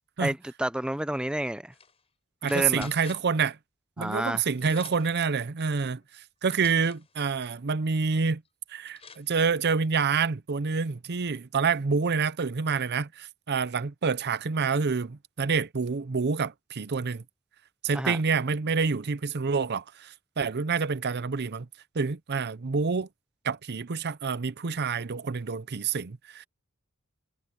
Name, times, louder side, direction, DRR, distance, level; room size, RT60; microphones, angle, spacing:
voice 1, 0.2-1.7 2.4-2.9 4.0-4.4 17.9-18.2, right 1 dB, 5° right, 0.4 m, -30 dB
sound 1, 1.7-2.0 2.4-3.4 4.2-4.3 4.6-5.2 6.0-6.1 6.5-7.1 8.4-8.5 8.9-9.3, left 5 dB, 30° left, 5.3 m, -48 dB
voice 2, 2.4-3.6 4.0-8.4 8.7-17.2 17.8-21.7 21.9-23.1 23.4-26.4, right 5 dB, 50° right, 0.7 m, -27 dB
head